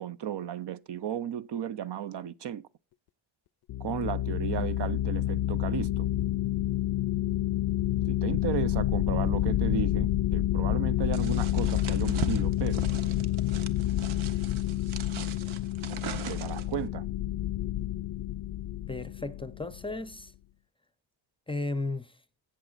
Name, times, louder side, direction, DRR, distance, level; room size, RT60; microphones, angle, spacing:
voice 1, 0.0-2.6 3.8-6.1 8.1-12.8 16.3-17.1, right 9 dB, 55° right, 0.6 m, -34 dB
sound 1, 3.7-19.9, left 14 dB, 50° left, 0.5 m, -29 dB
sound 2, 11.1-16.8, right 8 dB, 75° right, 1.1 m, -40 dB
voice 2, 18.9-20.3 21.5-22.2, left 2 dB, 10° left, 0.6 m, -34 dB
17.0 x 7.1 x 2.4 m
cardioid pair, 105°, 49 cm